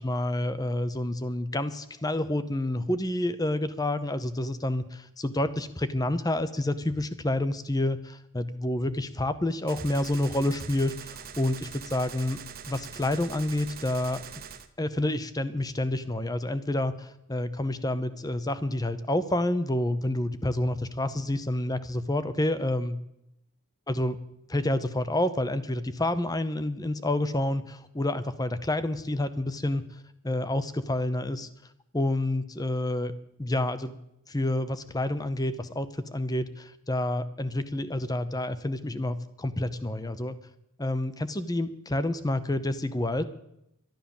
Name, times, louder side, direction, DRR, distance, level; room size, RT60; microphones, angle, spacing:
voice 1, 0.0-12.4 12.7-14.2 14.8-23.0 23.9-24.2 24.5-29.8 30.2-31.5 31.9-33.1 33.4-34.0 34.3-40.3 40.8-43.3, left 1 dB, 15° left, 13 dB, 0.8 m, -29 dB
Gunshot gunfire, 9.7-14.7, right 7 dB, 40° right, 1.0 m, -43 dB
12.0 x 11.5 x 7.2 m, 0.81 s
head